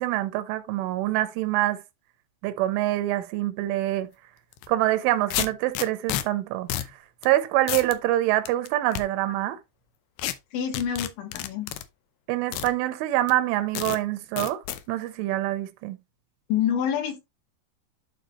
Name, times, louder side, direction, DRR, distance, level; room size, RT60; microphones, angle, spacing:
voice 1, 0.0-1.8 2.4-4.1 4.7-6.8 7.2-9.6 12.3-14.6 14.9-16.0, right 15 dB, 85° right, 3.2 m, -25 dB
sound 1, 4.5-4.7 5.3-6.2 6.7-6.9 7.2-7.3 7.7-8.0 8.5-9.0 10.2-10.3 10.7-11.8 12.5-12.7 13.3-13.4 13.8-14.0 14.4-14.8, left 12 dB, 90° left, 2.3 m, -30 dB
voice 2, 10.5-11.7 16.5-17.2, left 9 dB, 75° left, 3.9 m, -27 dB
11.5 x 4.2 x 3.1 m
omnidirectional pair, 5.6 m